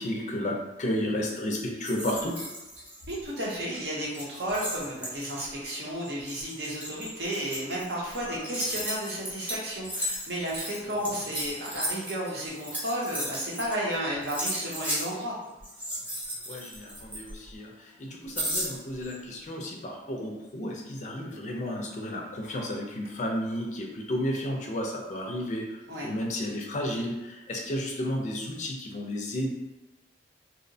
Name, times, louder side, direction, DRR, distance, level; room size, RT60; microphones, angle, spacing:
voice 1, 0.0-2.4 8.2-8.4 16.5-29.5, left 1 dB, 40° left, 1 dB, 0.4 m, -32 dB
sound 1, 1.8-3.4 3.7-3.8 4.1-13.9 14.2-15.1 15.6-17.6 18.3-19.1, equal, 10° right, 0.6 m, -35 dB
voice 2, 3.1-15.4 25.9-26.1, equal, 65° right, -4 dB, 0.7 m, -33 dB
2.7 x 2.0 x 2.6 m, 0.98 s
head